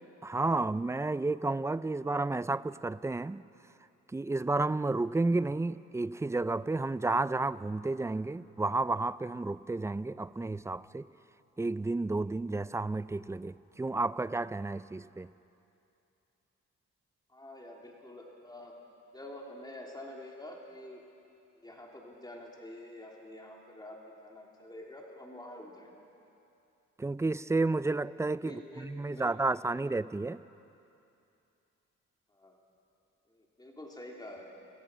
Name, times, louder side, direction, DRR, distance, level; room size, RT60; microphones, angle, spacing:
voice 1, 0.2-3.4 4.1-11.1 11.6-15.3 27.0-30.4, right 3 dB, 10° right, 0.4 m, -31 dB
voice 2, 17.3-18.8 19.1-21.0 21.6-25.9 28.4-29.4 32.3-32.6 33.3-34.5, left 1 dB, 15° left, 3.2 m, -47 dB
28.5 x 18.5 x 6.2 m
cardioid pair, 90°, 30 cm